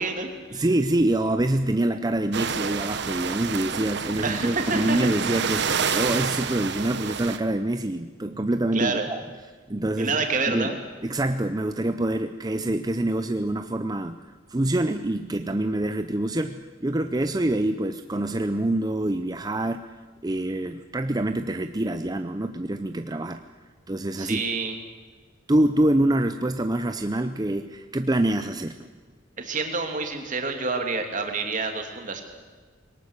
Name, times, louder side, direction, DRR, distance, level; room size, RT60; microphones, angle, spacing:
voice 1, 0.0-0.6 4.2-5.4 8.7-9.1 10.0-10.8 24.2-24.8 29.4-32.2, right 3 dB, 40° right, 4 dB, 2.8 m, -28 dB
voice 2, 0.5-9.2 9.7-10.2 10.5-10.7 11.0-14.2 14.5-19.9 20.2-23.4 23.9-24.4 25.5-28.8, right 1 dB, 20° right, 8 dB, 0.6 m, -25 dB
sound 1, 2.3-7.4, right 6 dB, 60° right, 1.2 m, -28 dB
22.0 x 18.5 x 8.2 m, 1.4 s
head